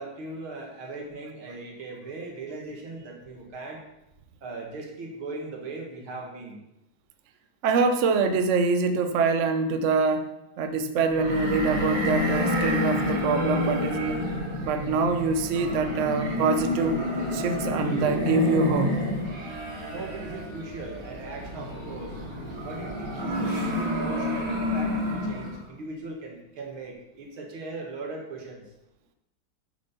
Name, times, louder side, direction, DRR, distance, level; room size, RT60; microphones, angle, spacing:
voice 1, 0.0-3.9 4.4-6.6 19.9-22.2 22.6-28.7, right 3 dB, 85° right, 0 dB, 2.5 m, -39 dB
voice 2, 7.6-14.2 14.6-17.0 17.3-19.0, right 4 dB, 65° right, 7 dB, 0.7 m, -25 dB
sound 1, 11.1-25.6, left 1 dB, 45° right, 2.7 m, -29 dB
8.9 x 7.8 x 4.1 m, 0.88 s
omnidirectional pair, 2.2 m